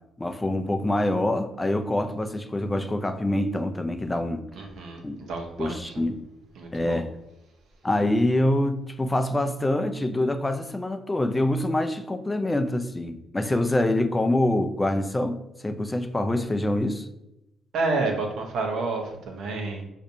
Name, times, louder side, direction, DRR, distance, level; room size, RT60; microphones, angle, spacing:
voice 1, 0.2-4.4 5.0-5.2 5.6-6.2 6.7-7.1 7.8-17.1, left 1 dB, 15° left, 7 dB, 0.3 m, -25 dB
voice 2, 4.6-6.1 6.6-7.0 17.7-19.8, right 3 dB, 80° right, 2 dB, 0.7 m, -30 dB
4.2 x 2.5 x 2.6 m, 0.90 s
cardioid pair, 90°, 0 cm